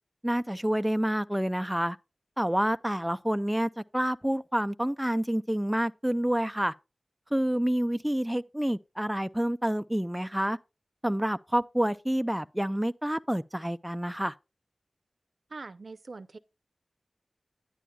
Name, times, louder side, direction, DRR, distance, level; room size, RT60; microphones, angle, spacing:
voice 1, 0.2-2.0 2.4-6.7 7.3-10.6 11.0-14.3, right 1 dB, 5° right, 0.3 m, -28 dB
voice 2, 15.5-16.4, right 3 dB, 70° right, 0.5 m, -43 dB
10.0 x 10.0 x 2.3 m
wide cardioid pair, 65°, 0 cm